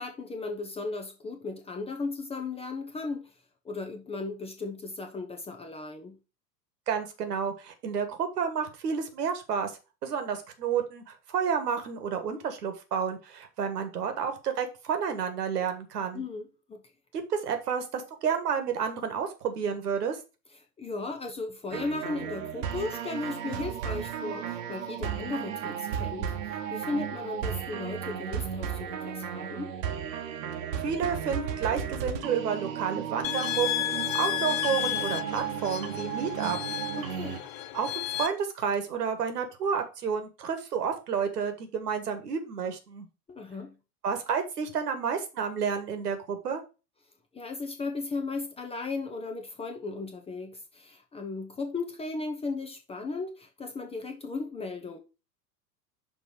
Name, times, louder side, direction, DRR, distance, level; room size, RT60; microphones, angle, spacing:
voice 1, 0.0-3.3 3.6-6.2 16.1-16.8 20.8-29.7 37.0-37.4 43.3-43.7 47.3-55.0, left 3 dB, 10° left, 0.7 m, -36 dB
voice 2, 6.9-9.7 10.0-16.2 17.3-20.2 30.8-33.9 34.1-36.6 37.7-43.1 44.0-46.6, right 7 dB, 70° right, 1.5 m, -30 dB
sound 1, 21.7-37.4, right 8 dB, 50° right, 1.1 m, -35 dB
sound 2, 33.2-38.3, left 16 dB, 55° left, 0.9 m, -32 dB
6.0 x 3.9 x 4.8 m
figure-of-eight pair, 90°, 50 cm